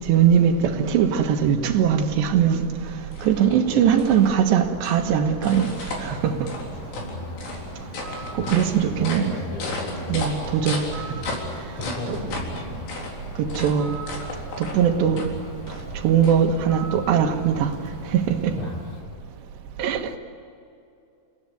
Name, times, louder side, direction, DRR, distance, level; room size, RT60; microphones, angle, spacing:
voice 1, 0.1-2.7 3.2-5.7 6.0-6.4 8.5-9.3 10.1-10.8 12.1-12.2 13.6-14.0 14.6-15.3 16.0-17.7 18.1-18.5 19.8-20.1, right 8 dB, 85° right, 3.6 m, -20 dB
sound 1, 2.4-16.9, left 2 dB, 80° left, 6.0 m, -36 dB
Bird, 5.5-19.0, equal, 65° left, 7.0 m, -40 dB
voice 2, 7.0-7.4 8.4-8.5 8.8-10.2 10.8-11.5 11.8-12.9 13.4-13.9 15.1-15.4 18.6-18.8, left 2 dB, 40° left, 6.2 m, -35 dB
29.0 x 17.5 x 9.3 m
omnidirectional pair, 4.8 m